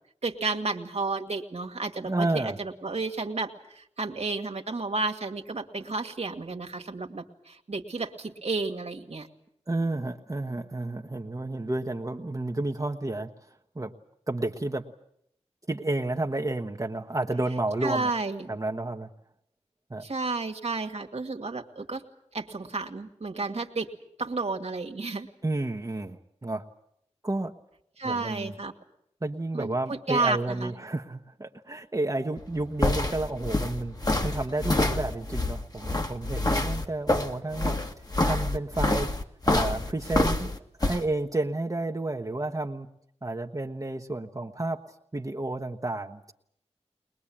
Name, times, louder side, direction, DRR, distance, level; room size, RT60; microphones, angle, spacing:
voice 1, 0.2-9.3 17.8-18.5 20.0-22.0 22.3-23.9 24.2-25.3 28.0-28.7 29.5-30.7, right 3 dB, 70° right, 3 dB, 1.8 m, -32 dB
voice 2, 2.1-2.6 9.7-13.3 13.7-13.9 14.3-14.9 15.7-18.1 18.5-19.1 19.9-20.0 25.4-26.6 27.2-27.5 28.0-28.5 29.2-33.9 34.2-37.8 38.2-39.1 39.5-40.5 40.8-42.9 43.2-44.8 45.1-46.3, right 2 dB, 30° right, 2 dB, 1.1 m, -31 dB
sound 1, 32.4-41.0, left 2 dB, 35° left, 1.8 m, -27 dB
21.5 x 21.0 x 8.7 m, 0.72 s
wide cardioid pair, 50°, 11 cm